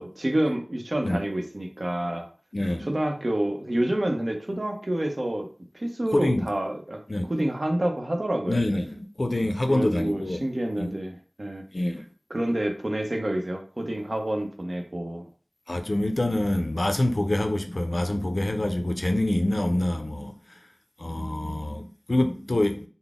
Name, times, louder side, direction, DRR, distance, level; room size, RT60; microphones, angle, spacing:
voice 1, 0.0-2.3 2.8-5.5 5.7-7.0 7.3-8.6 9.7-11.6 12.3-15.3, right 1 dB, 60° right, 0.7 m, -28 dB
voice 2, 2.5-2.9 6.1-6.5 7.1-7.3 8.5-10.4 10.8-10.9 11.7-12.0 15.7-20.7 21.0-22.9, left 1 dB, 65° left, 0.4 m, -26 dB
3.9 x 2.0 x 3.5 m
wide cardioid pair, 45°, 0 cm